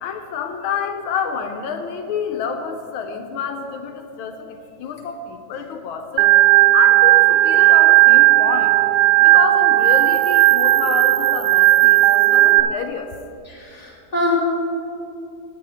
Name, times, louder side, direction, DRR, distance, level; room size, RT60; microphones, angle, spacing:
voice 1, 0.0-6.3 6.7-8.8 9.2-13.1, left 7 dB, 80° left, 5 dB, 1.5 m, -28 dB
Organ, 6.2-12.6, right 17 dB, 75° right, 1.0 m, -14 dB
voice 2, 13.5-14.4, left 2 dB, 20° left, -6 dB, 2.7 m, -24 dB
14.5 x 9.8 x 3.5 m, 2.6 s
omnidirectional pair, 2.3 m